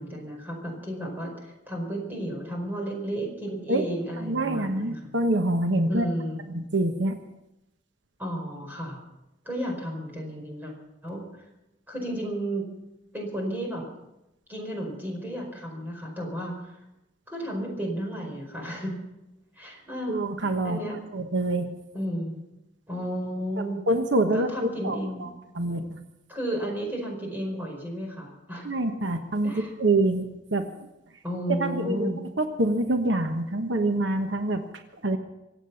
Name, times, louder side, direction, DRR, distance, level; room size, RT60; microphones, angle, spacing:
voice 1, 0.0-5.0 5.9-6.5 8.2-9.0 9.4-10.7 11.0-11.2 11.9-12.7 13.1-13.9 14.5-16.7 17.3-19.0 19.6-21.0 21.9-22.4 22.9-23.8 24.3-25.3 26.3-28.7 29.4-29.7 31.2-32.2, equal, 10° right, -1 dB, 4.9 m, -33 dB
voice 2, 4.2-6.0 6.5-7.2 20.1-20.8 21.1-21.7 23.9-25.3 25.5-26.0 28.6-30.7 31.6-34.6 35.0-35.2, right 2 dB, 75° right, 6 dB, 1.2 m, -26 dB
24.5 x 8.4 x 7.0 m, 0.94 s
head